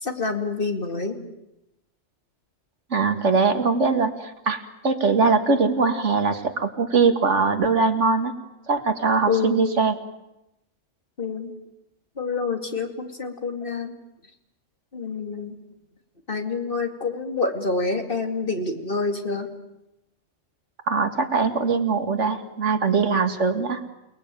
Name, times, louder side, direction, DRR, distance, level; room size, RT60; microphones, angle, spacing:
voice 1, 0.0-1.2 9.3-9.7 11.2-11.5 12.2-13.9 14.9-15.6 16.3-19.5, left 4 dB, 50° left, 5 dB, 2.8 m, -27 dB
voice 2, 2.9-8.3 8.7-9.9 20.9-23.8, right 4 dB, 85° right, 8 dB, 2.3 m, -21 dB
29.0 x 20.5 x 9.1 m, 0.89 s
omnidirectional pair, 1.2 m